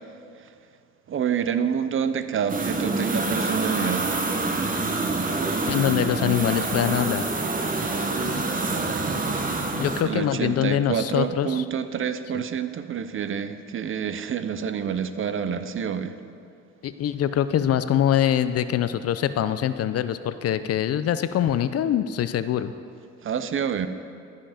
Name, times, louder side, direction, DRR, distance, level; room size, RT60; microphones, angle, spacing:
voice 1, 1.1-4.1 8.5-9.3 10.1-16.2 23.2-23.9, right 7 dB, 45° right, 11 dB, 0.5 m, -28 dB
sound 1, 2.5-10.0, right 3 dB, 25° right, 1.0 m, -26 dB
voice 2, 5.7-7.3 9.8-11.6 12.3-12.4 16.8-22.7, left 10 dB, 55° left, 12 dB, 0.5 m, -24 dB
12.5 x 5.7 x 5.0 m, 2.5 s
cardioid pair, 90°, 30 cm